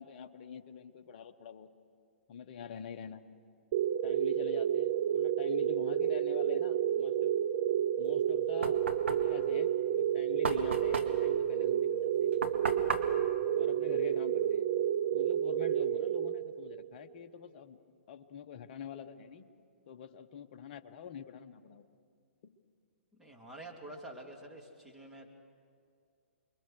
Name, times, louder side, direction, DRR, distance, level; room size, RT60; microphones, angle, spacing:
voice 1, 0.0-1.7 2.3-3.3 4.0-7.3 8.0-8.8 9.1-12.3 13.5-14.7 15.1-17.8 18.1-19.5 19.9-21.9 22.4-22.6, left 8 dB, 40° left, 9 dB, 1.1 m, -46 dB
sound 1, 3.7-16.9, right 10 dB, 40° right, 0.8 m, -30 dB
Knock, 8.1-14.5, right 4 dB, 70° right, 1.9 m, -38 dB
voice 2, 23.2-25.3, right 1 dB, 5° right, -2 dB, 2.9 m, -48 dB
28.0 x 22.5 x 6.5 m, 2.3 s
figure-of-eight pair, 120°, 7 cm